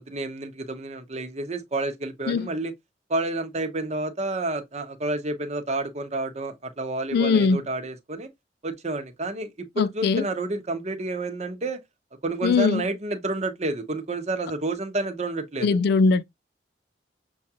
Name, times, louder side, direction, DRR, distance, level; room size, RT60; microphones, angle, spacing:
voice 1, 0.0-2.7 3.1-8.3 8.6-11.8 12.2-15.8, right 2 dB, 40° right, 0.8 m, -30 dB
voice 2, 7.1-7.6 9.8-10.3 12.4-12.8 15.6-16.2, left 4 dB, 60° left, 0.3 m, -21 dB
6.3 x 2.3 x 2.8 m
head